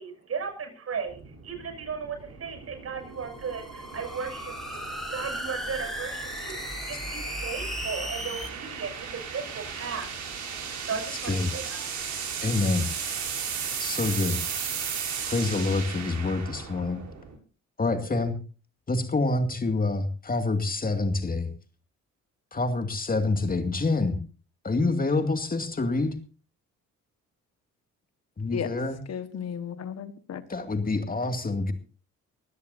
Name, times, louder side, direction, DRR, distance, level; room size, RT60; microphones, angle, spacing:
voice 1, 0.0-12.5 13.3-13.8, right 5 dB, 50° right, 7.0 m, -37 dB
sound 1, 1.1-17.3, right 6 dB, 70° right, 7.4 m, -36 dB
sound 2, 3.1-8.5, equal, ahead, 7.2 m, -36 dB
voice 2, 11.1-11.5 12.4-12.9 13.8-14.4 15.3-17.0 17.8-18.4 18.9-21.5 22.5-24.2 24.6-26.2 28.4-29.0 30.5-31.7, left 3 dB, 30° left, 2.3 m, -27 dB
voice 3, 29.1-30.4, left 7 dB, 60° left, 1.5 m, -34 dB
22.5 x 16.0 x 2.7 m
cardioid pair, 90°, 30 cm